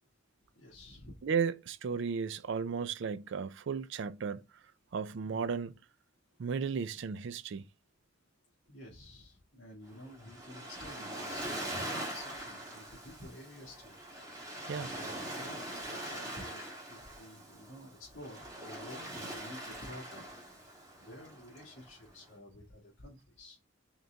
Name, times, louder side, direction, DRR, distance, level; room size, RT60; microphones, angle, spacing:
voice 1, 0.5-1.3 5.2-5.5 8.7-13.9 14.9-16.6 16.9-20.3 21.0-23.6, left 1 dB, 70° left, 1.6 m, -51 dB
voice 2, 1.2-4.4 4.9-5.7 6.4-7.6 14.7-14.9, right 6 dB, 60° right, 0.4 m, -34 dB
Waves surf, 9.9-22.3, right 1 dB, 20° right, 1.9 m, -43 dB
4.0 x 3.7 x 3.3 m
head